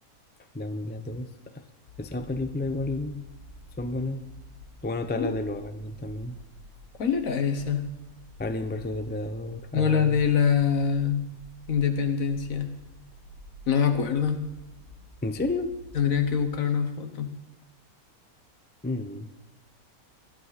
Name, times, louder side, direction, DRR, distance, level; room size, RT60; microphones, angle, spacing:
voice 1, 0.5-1.6 2.0-3.3 3.8-4.2 4.8-6.4 8.4-10.2 15.2-15.7 18.8-19.3, left 2 dB, 10° left, 9 dB, 0.4 m, -31 dB
sound 1, 1.9-16.4, equal, 85° left, 2.6 m, -49 dB
voice 2, 7.0-7.9 9.7-11.3 11.7-12.7 13.7-14.4 16.0-17.3, left 7 dB, 65° left, 7 dB, 1.6 m, -24 dB
20.0 x 13.5 x 4.1 m, 0.93 s
omnidirectional pair, 1.6 m